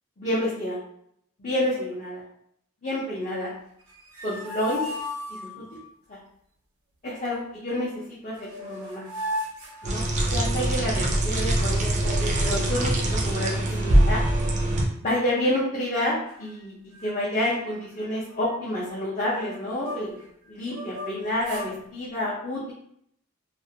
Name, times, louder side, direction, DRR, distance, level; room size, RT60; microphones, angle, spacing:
voice 1, 0.2-0.8 1.4-2.2 2.8-3.5 4.2-4.8 5.3-5.7 6.1-6.2 7.0-9.0 9.8-10.0 10.3-14.2 15.0-20.1 20.5-22.7, left 1 dB, 35° left, -7 dB, 0.5 m, -29 dB
sound 1, 3.8-5.8 8.0-8.1 8.4-10.6 11.9-12.8 13.3-13.4 13.7-14.8 15.1-15.4 16.0-16.6 16.9-17.1 17.4-20.3 20.7-21.7, left 1 dB, 90° right, 0.6 m, -37 dB
sound 2, 9.8-14.8, right 1 dB, 35° right, 0.4 m, -23 dB
2.4 x 2.1 x 2.7 m, 0.70 s
head